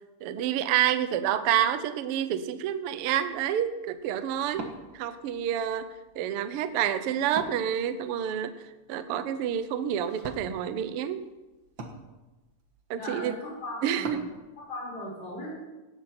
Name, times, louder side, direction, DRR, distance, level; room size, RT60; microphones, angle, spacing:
voice 1, 0.2-4.6 4.9-5.9 6.2-8.5 8.9-11.2 12.9-13.3 13.8-14.3, right 10 dB, 85° right, 11 dB, 1.2 m, -28 dB
Wood, 2.9-14.4, right 3 dB, 45° right, 1.7 m, -47 dB
voice 2, 13.0-14.1 14.6-15.5, left 1 dB, 45° left, -5 dB, 6.4 m, -38 dB
17.5 x 13.0 x 4.4 m, 1.1 s
omnidirectional pair, 3.8 m